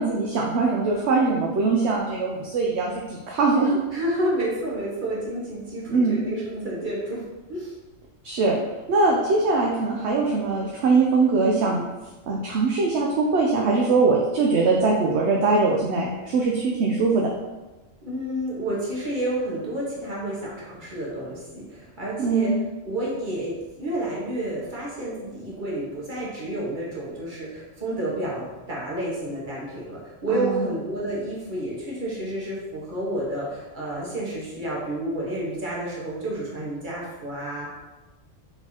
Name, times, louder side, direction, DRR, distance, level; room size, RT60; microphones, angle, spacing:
voice 1, 0.0-3.8 5.9-6.2 8.2-8.6 8.9-11.8 12.3-17.3 22.2-22.5 30.3-30.7, right 3 dB, 65° right, -1 dB, 0.8 m, -22 dB
voice 2, 3.9-7.2 7.5-7.7 18.0-22.5 22.8-37.7, right 1 dB, 40° right, -5 dB, 1.4 m, -30 dB
4.4 x 4.0 x 2.8 m, 1.1 s
omnidirectional pair, 1.3 m